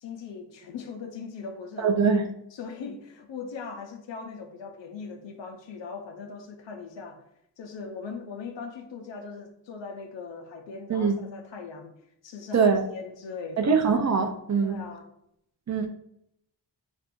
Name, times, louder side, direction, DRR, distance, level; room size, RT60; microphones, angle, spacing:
voice 1, 0.0-2.0 2.5-7.2 7.6-11.9 12.2-13.7 14.6-15.1, left 5 dB, 80° left, 0.6 m, -40 dB
voice 2, 1.8-2.3 10.9-11.2 12.5-12.8 13.6-14.8 15.7-15.9, right 5 dB, 40° right, 0.5 m, -23 dB
2.5 x 2.4 x 3.6 m
wide cardioid pair, 80°, 43 cm